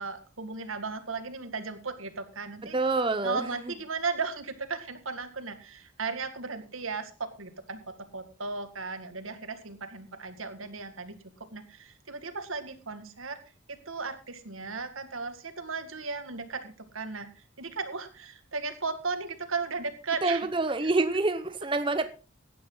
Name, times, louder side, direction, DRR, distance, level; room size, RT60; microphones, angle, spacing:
voice 1, 0.0-2.8 3.2-13.4 13.7-17.3 17.6-20.5 20.8-20.9, right 4 dB, 85° right, 9 dB, 2.1 m, -36 dB
voice 2, 2.7-3.5 20.2-22.1, right 3 dB, 25° right, 10 dB, 0.7 m, -27 dB
15.5 x 10.5 x 4.0 m, 0.33 s
head